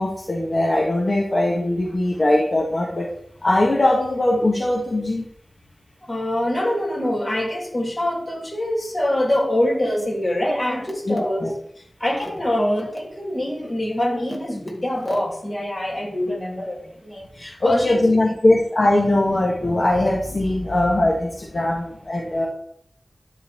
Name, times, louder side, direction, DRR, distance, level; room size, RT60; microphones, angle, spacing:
voice 1, 0.0-3.1 3.4-5.3 11.0-11.5 17.6-22.5, left 1 dB, 50° left, -3 dB, 1.6 m, -20 dB
voice 2, 6.1-11.5 12.0-18.0, left 1 dB, 30° left, -2 dB, 3.0 m, -24 dB
12.0 x 4.1 x 4.4 m, 0.65 s
wide cardioid pair, 60°, 0 cm